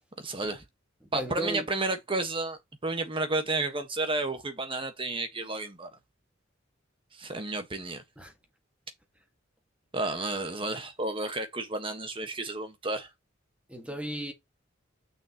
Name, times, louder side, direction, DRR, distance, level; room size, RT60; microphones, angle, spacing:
voice 1, 0.2-0.6 1.1-5.9 7.1-8.0 9.9-13.1, right 2 dB, 25° right, 1.5 m, -32 dB
voice 2, 1.0-1.7 8.2-8.3 13.7-14.3, right 1 dB, 5° right, 1.8 m, -35 dB
6.5 x 6.1 x 3.0 m
head